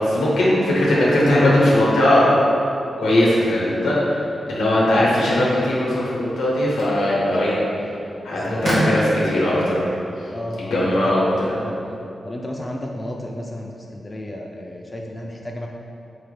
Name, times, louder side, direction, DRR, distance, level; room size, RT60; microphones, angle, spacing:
voice 1, 0.0-2.3 3.0-4.0 4.5-7.6 8.2-9.8 10.5-11.5, left 1 dB, 90° left, -6 dB, 0.8 m, -19 dB
sound 1, 5.8-12.0, right 1 dB, 60° right, 1.1 m, -31 dB
voice 2, 8.3-8.6 10.3-11.2 11.5-15.7, left 1 dB, 30° left, 0 dB, 0.3 m, -33 dB
4.4 x 3.1 x 2.2 m, 2.7 s
supercardioid pair, 40°, 0 cm